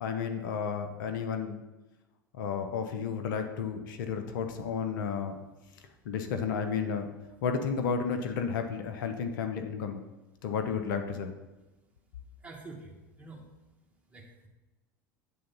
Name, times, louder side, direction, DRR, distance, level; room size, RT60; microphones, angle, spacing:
voice 1, 0.0-1.6 2.3-5.4 6.0-7.1 7.4-10.0 10.4-11.3, left 6 dB, 75° left, 6 dB, 0.7 m, -32 dB
voice 2, 12.4-13.5 14.1-14.5, right 3 dB, 10° right, -1 dB, 1.9 m, -47 dB
8.7 x 3.8 x 5.4 m, 1.1 s
hypercardioid pair, 80°, 11 cm